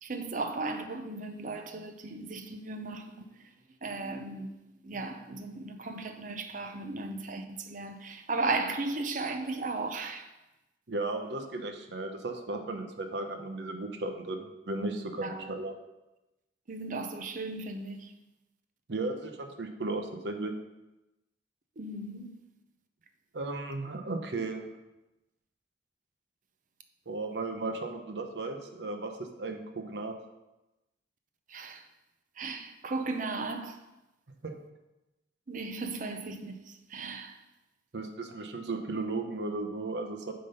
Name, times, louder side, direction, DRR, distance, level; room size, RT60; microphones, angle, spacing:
voice 1, 0.0-3.2 3.8-4.6 4.8-10.3 15.2-15.5 16.7-18.1 21.8-22.4 31.5-31.9 32.4-33.8 35.5-37.4, right 3 dB, 45° right, 0.6 m, -36 dB
voice 2, 10.9-15.7 18.9-20.5 23.3-24.6 27.1-30.2 34.4-34.5 37.9-40.3, right 2 dB, 75° right, 0.8 m, -35 dB
8.6 x 3.9 x 5.5 m
head